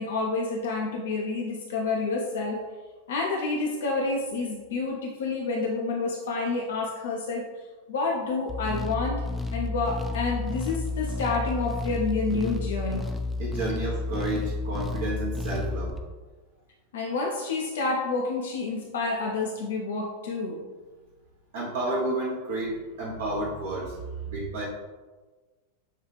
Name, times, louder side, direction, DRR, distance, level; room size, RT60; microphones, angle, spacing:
voice 1, 0.0-2.7 3.1-7.4 7.9-9.2 9.5-13.1 16.9-20.6, left 3 dB, 60° left, -1 dB, 0.5 m, -29 dB
sound 1, 8.5-16.0, left 3 dB, 5° left, 0.4 m, -31 dB
voice 2, 13.4-16.0 21.5-24.6, right 2 dB, 60° right, -4 dB, 0.8 m, -31 dB
6.6 x 2.3 x 3.2 m, 1.3 s
figure-of-eight pair, 90°, 0 cm